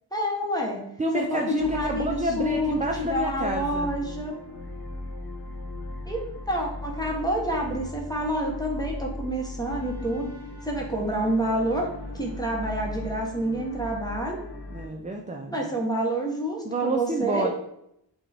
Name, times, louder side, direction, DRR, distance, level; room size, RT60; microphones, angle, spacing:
voice 1, 0.1-0.8 1.1-4.4 6.1-10.3 10.6-11.9 12.1-14.4 15.5-17.5, right 1 dB, 10° left, -2 dB, 0.9 m, -28 dB
voice 2, 1.0-3.9 14.7-15.6 16.7-17.5, right 2 dB, 20° right, 2 dB, 0.4 m, -29 dB
sound 1, 1.6-14.9, left 1 dB, 60° left, 1.1 m, -37 dB
6.1 x 2.3 x 3.3 m, 0.78 s
wide cardioid pair, 45°, 46 cm